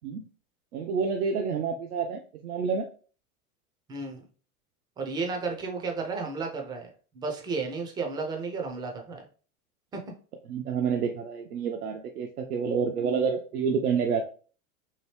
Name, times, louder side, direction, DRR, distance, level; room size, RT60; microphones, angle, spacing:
voice 1, 0.7-2.9 10.5-14.2, right 6 dB, 85° right, 3 dB, 0.5 m, -28 dB
voice 2, 3.9-4.2 5.0-9.2 9.9-10.0, right 4 dB, 10° right, 2 dB, 0.4 m, -33 dB
2.9 x 2.6 x 3.1 m, 0.40 s
hypercardioid pair, 100°, 44 cm